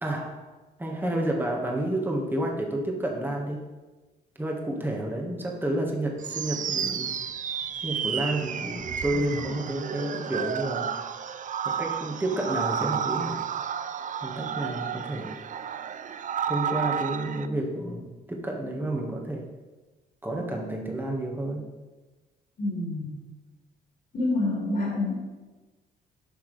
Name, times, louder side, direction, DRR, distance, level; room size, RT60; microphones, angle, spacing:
voice 1, 0.0-0.5 0.8-3.6 4.4-7.1 7.8-10.9 11.6-13.4 14.2-15.3 16.5-19.5 20.2-21.7, right 1 dB, 10° right, 0 dB, 1.6 m, -30 dB
sound 1, 6.2-17.5, right 8 dB, 45° right, 0.5 m, -31 dB
voice 2, 22.6-23.1 24.1-25.1, left 2 dB, 55° left, -2 dB, 2.3 m, -27 dB
9.5 x 5.9 x 3.4 m, 1.2 s
cardioid pair, 75°, 19 cm